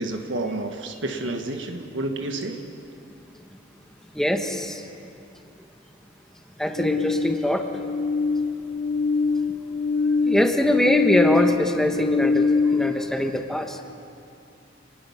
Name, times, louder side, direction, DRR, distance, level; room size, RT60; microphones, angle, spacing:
voice 1, 0.0-2.7, right 2 dB, 80° right, 4 dB, 1.5 m, -30 dB
voice 2, 4.1-4.8 6.6-7.7 10.2-13.8, left 1 dB, 5° left, 4 dB, 1.3 m, -23 dB
sound 1, 6.8-12.9, left 4 dB, 65° left, 0.7 m, -24 dB
27.5 x 20.5 x 5.8 m, 2.6 s
head